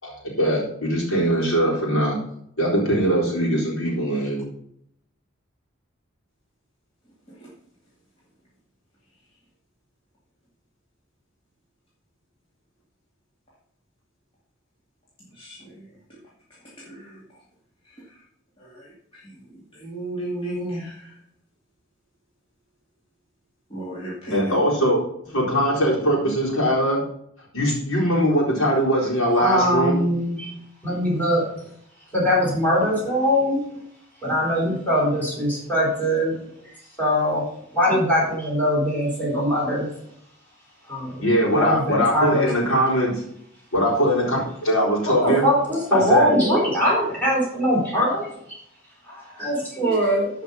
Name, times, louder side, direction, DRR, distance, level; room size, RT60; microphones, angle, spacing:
voice 1, 0.0-2.2 2.6-4.4 24.3-25.0 25.3-27.0 27.5-29.9 41.2-43.2 43.7-45.5 45.9-46.3, equal, 90° left, -3 dB, 3.9 m, -21 dB
voice 2, 15.3-15.9 16.8-17.2 18.1-18.2 18.6-21.1 23.7-24.6, right 1 dB, 25° left, -7 dB, 2.4 m, -34 dB
voice 3, 29.4-30.5 30.8-31.5 32.1-33.6 34.2-36.3 37.0-39.9 40.9-41.2 41.5-42.5 45.1-48.6 49.0-50.3, equal, 10° left, -6 dB, 4.6 m, -22 dB
12.0 x 5.3 x 5.5 m, 0.71 s
head